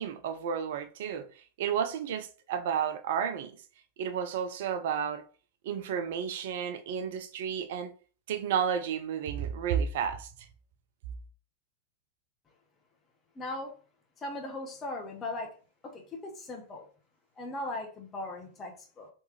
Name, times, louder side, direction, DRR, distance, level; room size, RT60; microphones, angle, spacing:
voice 1, 0.0-3.5 4.0-5.2 5.6-7.9 8.3-10.3, right 8 dB, 55° right, 0.4 m, -32 dB
voice 2, 13.3-13.7 14.2-15.5 15.8-16.9 17.4-19.1, left 2 dB, 25° left, 1.2 m, -38 dB
3.4 x 3.1 x 3.1 m
figure-of-eight pair, 90°, 0 cm